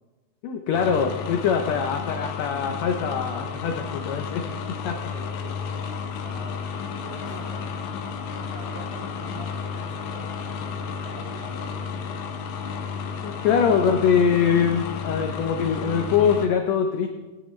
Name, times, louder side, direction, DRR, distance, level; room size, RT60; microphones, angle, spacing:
voice 1, 0.4-4.9 13.0-17.1, left 7 dB, 90° left, 4 dB, 1.5 m, -23 dB
sound 1, 0.7-16.5, left 6 dB, 70° left, 2.1 m, -32 dB
voice 2, 4.9-6.6 7.0-7.8 8.4-12.1, right 2 dB, 80° right, -4 dB, 4.8 m, -44 dB
18.5 x 10.5 x 3.2 m, 1.2 s
omnidirectional pair, 4.0 m